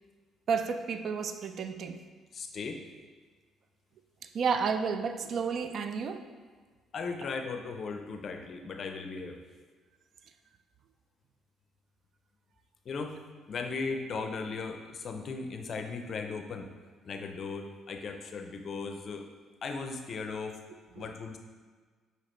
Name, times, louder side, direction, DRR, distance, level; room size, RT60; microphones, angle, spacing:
voice 1, 0.5-2.0 4.3-6.2 21.0-21.1, right 6 dB, 60° right, 8 dB, 0.3 m, -31 dB
voice 2, 2.3-2.8 6.9-9.4 12.9-13.2 13.5-16.7 17.0-19.3 19.6-20.6 21.0-21.4, left 4 dB, 55° left, 6 dB, 0.4 m, -37 dB
5.7 x 2.8 x 3.1 m, 1.5 s
supercardioid pair, 60°, 0 cm